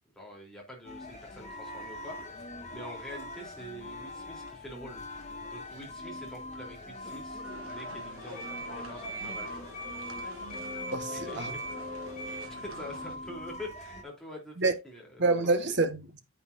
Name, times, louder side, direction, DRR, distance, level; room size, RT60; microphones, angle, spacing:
voice 1, 0.1-5.0 5.4-9.7 11.1-11.6 12.2-15.2 15.6-15.7, equal, ahead, 3.3 m, -45 dB
sound 1, 0.8-14.0, left 1 dB, 30° left, 1.8 m, -41 dB
sound 2, 7.4-13.2, right 2 dB, 65° right, 1.5 m, -47 dB
voice 2, 10.9-11.5 14.6-14.7 15.2-16.2, right 3 dB, 50° right, 1.4 m, -27 dB
9.3 x 8.6 x 2.6 m
head